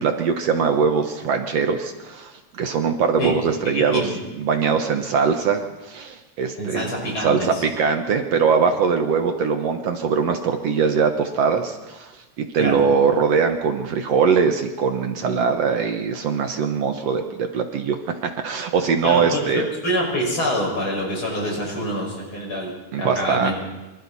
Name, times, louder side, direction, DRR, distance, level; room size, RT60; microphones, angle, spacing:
voice 1, 0.0-4.1 4.4-6.9 7.2-19.7 22.9-23.5, right 6 dB, 65° right, 5 dB, 2.2 m, -21 dB
voice 2, 3.7-4.1 6.6-7.5 12.6-12.8 19.0-23.5, equal, 45° left, -1 dB, 6.7 m, -26 dB
25.5 x 25.5 x 4.2 m, 1.1 s
omnidirectional pair, 3.3 m